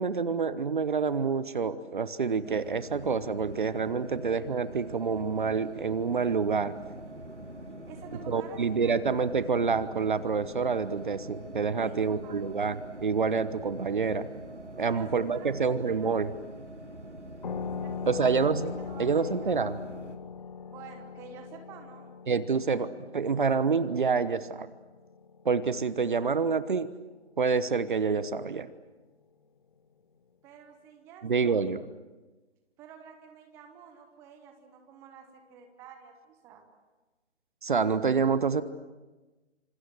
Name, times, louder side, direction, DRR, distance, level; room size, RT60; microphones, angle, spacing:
voice 1, 0.0-6.7 8.3-14.3 14.8-16.3 18.1-18.7 19.0-19.8 22.3-24.7 25.4-26.9 27.4-28.7 31.2-31.8 37.6-38.6, right 5 dB, 45° right, 15 dB, 1.1 m, -27 dB
sound 1, 2.4-20.2, right 1 dB, 80° right, 4.0 m, -44 dB
voice 2, 7.8-9.0 11.8-12.7 14.8-15.5 15.9-16.1 17.8-18.3 18.8-19.7 20.6-22.2 30.4-31.6 32.8-36.7, right 7 dB, 5° right, 5 dB, 1.1 m, -50 dB
sound 2, 17.4-26.6, left 6 dB, 40° left, 1.1 m, -41 dB
27.0 x 26.5 x 7.7 m, 1.2 s
figure-of-eight pair, 145°, 35 cm